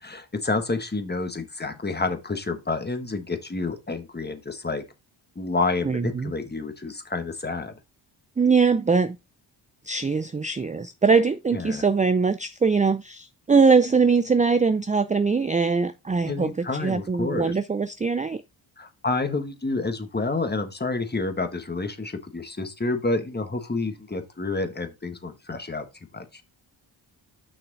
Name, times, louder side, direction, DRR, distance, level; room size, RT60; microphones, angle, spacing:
voice 1, 0.0-4.8 5.3-7.7 11.5-11.8 16.3-17.6 18.8-25.9 26.1-26.4, left 3 dB, 20° left, 1.4 m, -29 dB
voice 2, 5.8-6.3 8.4-9.2 9.8-18.4, right 5 dB, 15° right, 0.4 m, -22 dB
6.3 x 5.9 x 4.0 m
cardioid pair, 85°, 46 cm